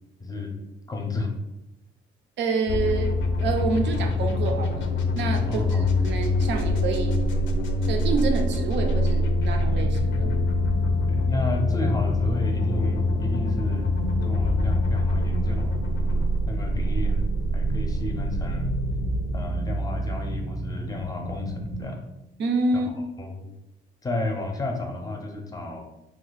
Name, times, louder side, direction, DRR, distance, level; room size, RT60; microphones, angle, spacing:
voice 1, 0.2-0.5 0.9-1.3 5.5-5.9 11.1-13.9 14.2-15.8 16.1-17.2 17.5-18.7 19.3-22.0 23.2-23.5 24.0-25.8, left 2 dB, 20° left, 3 dB, 0.6 m, -32 dB
voice 2, 2.4-4.9 5.1-7.2 7.9-10.3 22.4-22.9, right 3 dB, 65° right, 4 dB, 0.6 m, -28 dB
sound 1, 2.7-20.4, left 1 dB, 75° left, 0.5 m, -25 dB
sound 2, 9.3-21.8, right 1 dB, 25° right, 0.6 m, -32 dB
2.7 x 2.3 x 4.0 m, 0.91 s
cardioid pair, 90°, 20 cm